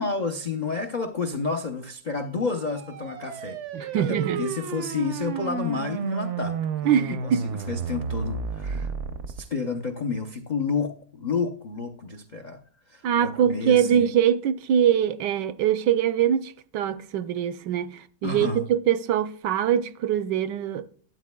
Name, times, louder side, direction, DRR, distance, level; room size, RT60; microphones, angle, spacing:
voice 1, 0.0-3.6 4.0-6.6 6.8-8.9 9.3-12.6 12.9-14.1 18.2-18.6, left 4 dB, 70° left, 0.4 m, -30 dB
sound 1, 2.5-9.4, right 5 dB, 60° right, 0.7 m, -32 dB
voice 2, 3.7-4.5 6.8-7.5 8.7-8.9 13.0-20.9, right 9 dB, 80° right, 1.2 m, -23 dB
12.5 x 8.7 x 2.2 m
omnidirectional pair, 2.0 m